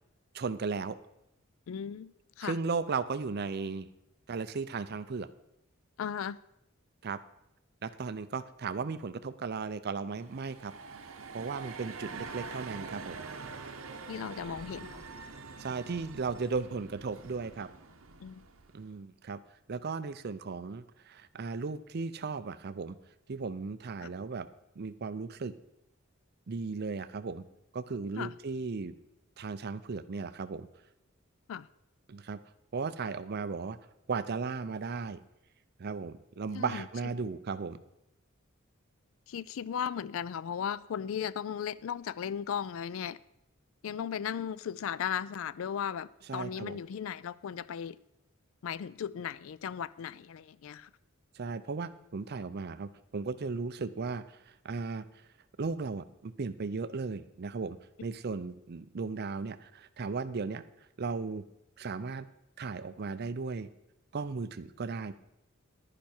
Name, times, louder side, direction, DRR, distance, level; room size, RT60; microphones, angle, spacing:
voice 1, 0.3-1.0 2.4-3.9 4.3-5.3 7.0-7.2 7.8-10.7 11.3-13.2 15.6-17.7 18.7-19.4 19.7-23.0 23.3-24.5 24.8-25.5 26.5-27.4 27.7-28.9 29.4-30.7 32.1-32.4 32.7-33.8 34.1-35.2 35.8-37.8 46.3-46.8 51.3-55.0 55.6-60.6 61.0-61.4 61.8-62.3 62.6-63.7 64.1-65.1, right 4 dB, 50° right, 0.5 m, -36 dB
voice 2, 1.7-2.6 6.0-6.4 14.1-15.0 18.2-18.5 24.0-24.1 28.2-28.3 31.5-31.7 36.5-36.8 39.3-43.2 43.8-48.0 48.6-50.9, left 8 dB, 70° left, 0.3 m, -36 dB
sound 1, 10.1-18.9, right 4 dB, 75° right, 1.0 m, -45 dB
10.5 x 10.0 x 4.4 m
head